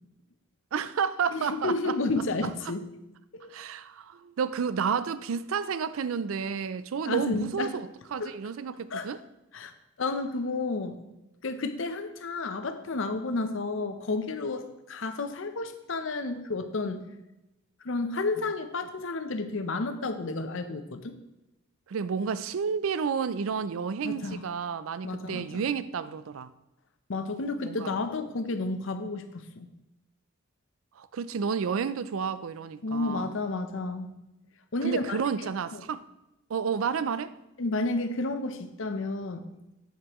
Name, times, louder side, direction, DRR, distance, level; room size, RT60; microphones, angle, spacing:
voice 1, 0.7-2.0 2.4-2.5 3.5-9.2 21.9-26.5 27.6-27.9 31.0-33.4 34.8-36.0 36.5-37.3, right 6 dB, 75° right, 0.4 m, -31 dB
voice 2, 1.3-2.8 3.3-3.5 7.1-7.7 8.2-8.3 8.9-9.1 9.5-9.7 10.0-11.0 11.4-17.0 17.8-21.2 24.0-24.5 25.0-25.6 27.1-29.7 32.8-34.1 34.7-35.2 35.7-35.8 37.6-39.5, left 3 dB, 65° left, 0.7 m, -31 dB
8.2 x 7.6 x 3.0 m
head